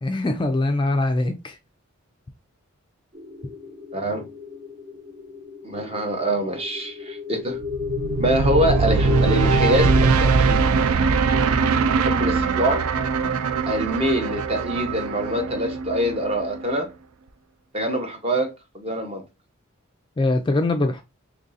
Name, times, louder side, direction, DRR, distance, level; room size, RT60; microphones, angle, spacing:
voice 1, 0.0-1.6 20.2-21.0, left 2 dB, 20° left, 0.3 m, -22 dB
sound 1, 3.1-10.1, left 6 dB, 45° right, 1.1 m, -33 dB
voice 2, 3.9-4.3 5.6-7.6 8.2-10.7 12.0-12.9 13.7-16.9 17.7-19.2, right 1 dB, 30° right, 0.7 m, -25 dB
sound 2, 7.6-16.8, right 4 dB, 90° right, 0.4 m, -21 dB
3.0 x 2.5 x 3.9 m
head